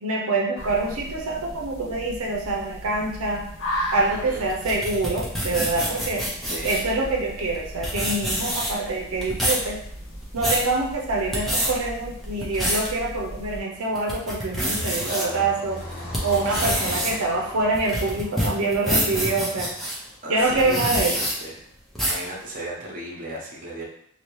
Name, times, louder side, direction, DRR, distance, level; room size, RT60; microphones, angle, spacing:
voice 1, 0.0-3.5 3.9-6.2 6.6-9.8 10.3-15.8 16.2-19.7 20.3-21.1, right 2 dB, 80° right, -1 dB, 0.6 m, -25 dB
sound 1, 0.5-13.6, equal, 70° left, 0.9 m, -37 dB
voice 2, 4.1-4.5 6.4-6.8 15.0-15.5 16.5-17.0 20.2-21.6 22.0-23.8, right 1 dB, 35° right, -4 dB, 0.8 m, -35 dB
sound 2, 4.5-6.9 7.5-7.6 7.8-8.9 9.2-9.7 10.1-10.7 11.2-11.7 12.2-12.9 13.4-13.5 13.9-15.2 15.8-20.0 20.5-21.3 22.0-22.3, equal, ahead, 0.5 m, -26 dB
Car passing by, 13.3-20.3, left 1 dB, 40° left, 0.9 m, -40 dB
2.8 x 2.7 x 3.1 m, 0.68 s
head